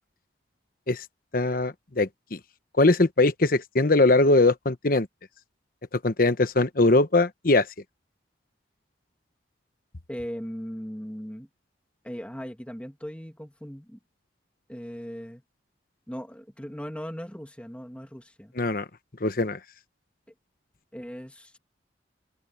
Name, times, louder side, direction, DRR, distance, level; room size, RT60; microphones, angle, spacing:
voice 1, 1.3-2.4 2.8-5.1 5.9-7.7 18.5-18.9 19.2-19.6, left 2 dB, 50° left, 1.1 m, -21 dB
voice 2, 10.1-11.5 12.0-14.0 14.7-15.4 16.1-18.5 20.9-21.6, equal, 5° left, 2.1 m, -38 dB
head